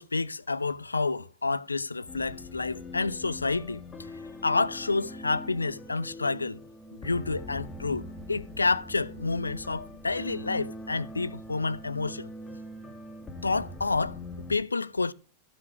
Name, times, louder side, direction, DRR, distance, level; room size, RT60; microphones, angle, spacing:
voice 1, 0.0-3.8 4.4-6.6 6.9-12.3 13.4-14.2 14.5-15.1, left 3 dB, 80° left, 0.4 m, -29 dB
sound 1, 2.1-14.6, left 1 dB, 15° left, 1.6 m, -42 dB
14.5 x 6.2 x 4.6 m
figure-of-eight pair, 90°, 0 cm